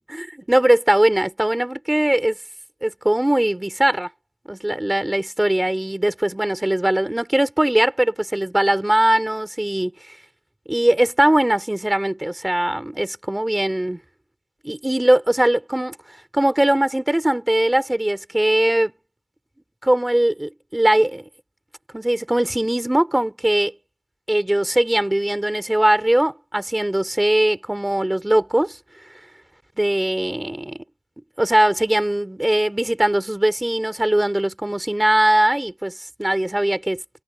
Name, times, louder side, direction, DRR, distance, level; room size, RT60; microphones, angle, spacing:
voice 1, 0.0-2.4 2.8-4.1 4.5-9.9 10.7-14.0 14.6-18.9 19.8-21.2 21.9-23.7 24.3-28.8 29.1-29.2 29.8-30.8 31.4-37.0, right 1 dB, 10° right, 3.8 m, -20 dB
cardioid pair, 55°, 0 cm